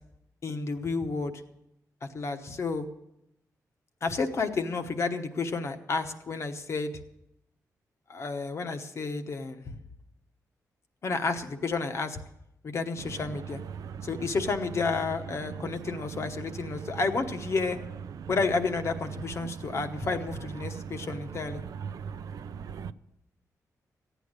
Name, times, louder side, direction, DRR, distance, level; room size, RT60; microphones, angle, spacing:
voice 1, 0.4-1.4 2.0-2.9 4.0-6.9 8.1-9.8 11.0-12.2 12.6-13.6 14.0-17.8 18.3-21.6, left 4 dB, 45° left, 7 dB, 1.1 m, -31 dB
voice 2, 21.9-22.9, right 6 dB, 75° right, 13 dB, 0.5 m, -39 dB
15.0 x 9.2 x 6.5 m, 0.83 s
wide cardioid pair, 140°, 6 cm